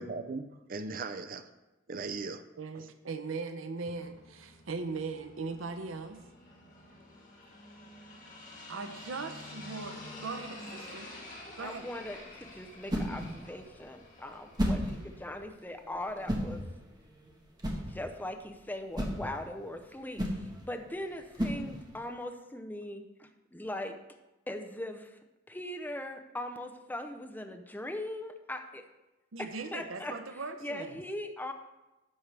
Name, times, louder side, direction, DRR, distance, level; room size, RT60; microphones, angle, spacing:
voice 1, 0.0-1.4 1.9-2.4, right 3 dB, 45° right, 0.5 m, -38 dB
voice 2, 2.6-6.2 8.7-11.1 11.6-11.9 29.3-31.0, right 4 dB, 85° right, 0.7 m, -39 dB
sound 1, 3.8-15.4, left 2 dB, 40° left, 2.2 m, -49 dB
voice 3, 11.6-16.6 17.8-24.0 24.5-25.2 25.5-28.8 29.4-30.1 30.6-31.5, left 1 dB, 10° left, 0.6 m, -40 dB
sound 2, 11.6-22.1, equal, 20° right, 1.3 m, -36 dB
11.0 x 7.0 x 3.4 m
head